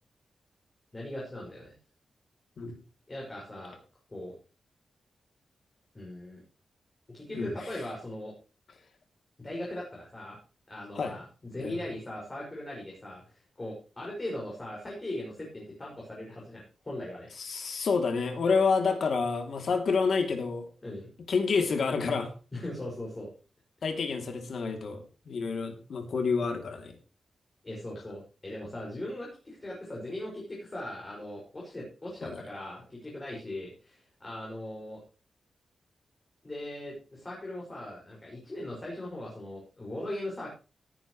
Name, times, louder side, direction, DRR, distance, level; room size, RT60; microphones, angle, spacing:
voice 1, 0.9-1.7 3.1-3.8 4.1-4.3 5.9-6.4 7.1-8.3 9.4-10.4 10.7-17.3 20.8-21.1 22.5-23.3 27.6-35.0 36.4-40.5, left 1 dB, 20° left, -3 dB, 5.9 m, -39 dB
voice 2, 17.4-20.6 21.3-22.3 23.8-26.9 32.2-32.4, left 5 dB, 60° left, 5 dB, 2.9 m, -28 dB
18.0 x 10.5 x 3.2 m, 0.34 s
wide cardioid pair, 160°, 0 cm